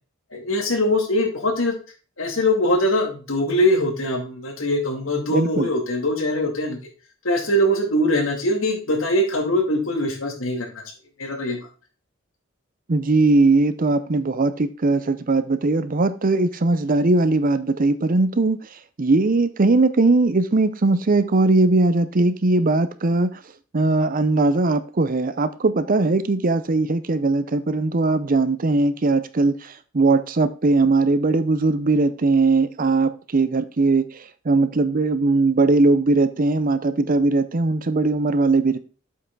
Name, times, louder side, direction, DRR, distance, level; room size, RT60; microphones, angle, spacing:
voice 1, 0.3-1.7 2.2-6.8 7.2-10.8 11.2-11.6, left 1 dB, 85° left, 2.4 m, -22 dB
voice 2, 5.3-5.7 12.9-23.4 23.7-38.8, right 3 dB, 45° right, 0.6 m, -20 dB
7.8 x 5.7 x 3.9 m
head